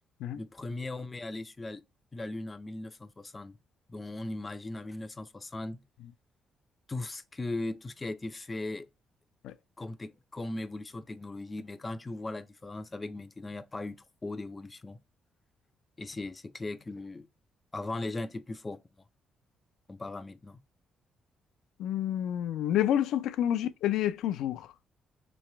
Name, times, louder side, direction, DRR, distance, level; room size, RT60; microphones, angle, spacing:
voice 1, 0.3-1.8 2.1-3.6 3.9-5.8 6.9-8.9 9.8-15.0 16.0-17.3 17.7-18.8 19.9-20.6, left 2 dB, 25° left, 0.5 m, -38 dB
voice 2, 21.8-24.7, left 11 dB, 85° left, 0.3 m, -29 dB
3.2 x 3.1 x 4.4 m
cardioid pair, 80°, 0 cm